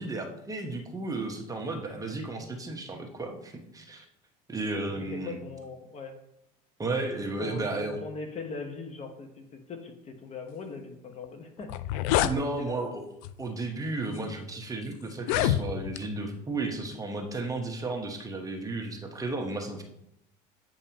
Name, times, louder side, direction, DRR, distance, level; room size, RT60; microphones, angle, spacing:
voice 1, 0.0-4.0 4.5-5.4 6.8-8.0 12.2-13.1 13.4-19.8, right 2 dB, 20° right, 3 dB, 1.1 m, -33 dB
voice 2, 4.9-6.2 7.4-13.0 15.4-15.6, left 4 dB, 40° left, 6 dB, 1.1 m, -41 dB
sound 1, 11.2-11.3 11.6-12.4 13.2-13.5 14.2-14.3 15.1-16.0, left 12 dB, 75° left, 0.4 m, -27 dB
8.2 x 5.3 x 2.9 m, 0.79 s
supercardioid pair, 100°, 18 cm